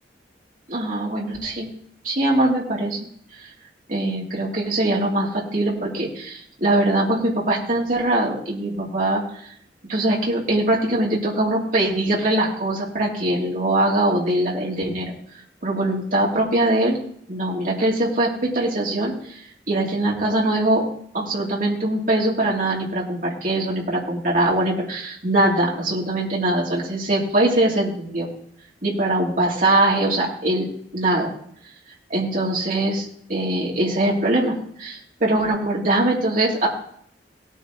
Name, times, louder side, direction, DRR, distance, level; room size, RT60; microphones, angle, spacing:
voice 1, 0.7-1.7 2.0-3.0 3.9-9.2 9.8-15.1 15.6-17.0 17.3-19.1 19.7-20.9 21.1-28.3 28.8-31.3 32.1-36.7, right 1 dB, 50° right, -3 dB, 3.0 m, -22 dB
18.0 x 9.2 x 3.0 m, 0.65 s
head